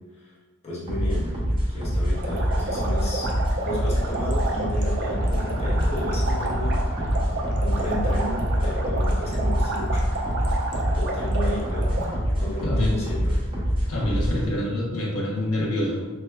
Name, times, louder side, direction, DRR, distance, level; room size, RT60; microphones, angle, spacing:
voice 1, 0.6-1.3 1.7-3.3 3.6-6.8 7.6-10.0 10.9-13.4, left 1 dB, 30° left, -6 dB, 1.0 m, -33 dB
sound 1, 0.9-14.5, equal, 25° right, 0.9 m, -25 dB
sound 2, 2.1-12.1, right 2 dB, 55° right, 0.6 m, -31 dB
sound 3, 5.2-11.6, equal, 10° left, 0.5 m, -35 dB
voice 2, 12.6-12.9 13.9-16.1, left 1 dB, 75° left, -2 dB, 0.9 m, -26 dB
5.8 x 2.0 x 2.2 m, 1.3 s
head